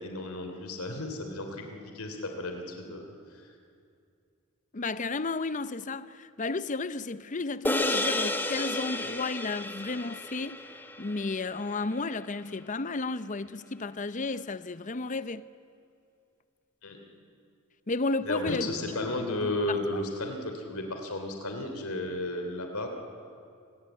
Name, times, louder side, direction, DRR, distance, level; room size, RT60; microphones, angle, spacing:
voice 1, 0.0-3.1 3.3-3.4 16.8-17.0 18.2-22.9, left 2 dB, 85° left, 3.0 m, -33 dB
voice 2, 4.7-10.7 11.0-15.5 17.9-18.7 19.0-19.8, left 3 dB, 35° left, 0.6 m, -33 dB
sound 1, 7.6-12.2, left 2 dB, 10° left, 1.2 m, -32 dB
28.5 x 19.5 x 8.9 m
head